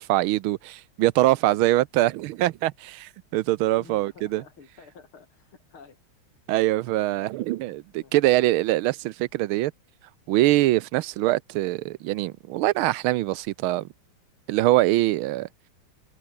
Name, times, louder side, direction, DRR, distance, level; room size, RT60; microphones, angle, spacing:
voice 1, 0.0-4.4 6.5-9.7 10.3-13.9 14.5-15.5, right 16 dB, 80° right, 1.4 m, -23 dB
voice 2, 3.7-6.0 6.3-6.6 7.7-8.1 10.9-11.1, left 5 dB, 75° left, 3.7 m, -51 dB
omnidirectional pair, 2.3 m